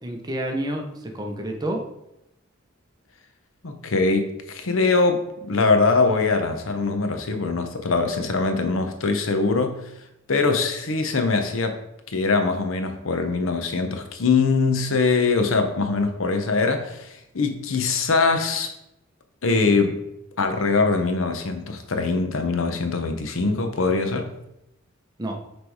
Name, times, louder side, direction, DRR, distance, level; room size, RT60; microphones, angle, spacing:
voice 1, 0.0-1.8 25.2-25.4, right 1 dB, 20° right, 2 dB, 0.7 m, -29 dB
voice 2, 3.6-9.8 10.3-11.8 12.1-18.7 19.4-20.0 20.4-24.3, left 4 dB, 85° left, 7 dB, 0.8 m, -22 dB
6.1 x 3.3 x 4.7 m, 0.84 s
head